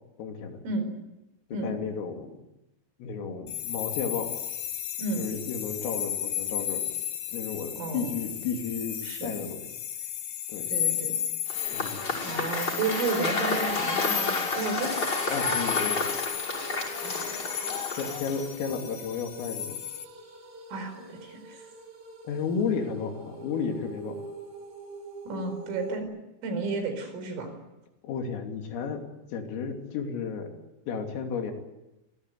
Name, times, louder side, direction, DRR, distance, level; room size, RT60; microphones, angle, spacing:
voice 1, 0.2-0.6 1.5-2.4 3.0-4.3 5.2-6.9 7.3-9.6 10.5-10.7 11.7-12.5 15.3-16.1 18.0-19.8 22.2-24.2 28.0-29.0 29.3-30.5 30.9-31.5, left 6 dB, 85° left, 3 dB, 5.7 m, -33 dB
sound 1, 3.5-20.0, left 10 dB, 60° left, 2.7 m, -34 dB
voice 2, 7.8-8.1 9.0-9.3 10.7-11.1 12.2-14.9 17.0-18.1 20.7-21.7 25.3-26.1 26.4-27.5, right 3 dB, 80° right, 7 dB, 7.1 m, -33 dB
Cheering / Applause / Crowd, 11.5-18.6, left 3 dB, 20° left, 6.1 m, -30 dB
sound 2, 13.5-26.0, right 3 dB, 30° right, 4.1 m, -44 dB
26.5 x 18.0 x 9.5 m, 0.95 s
omnidirectional pair, 5.8 m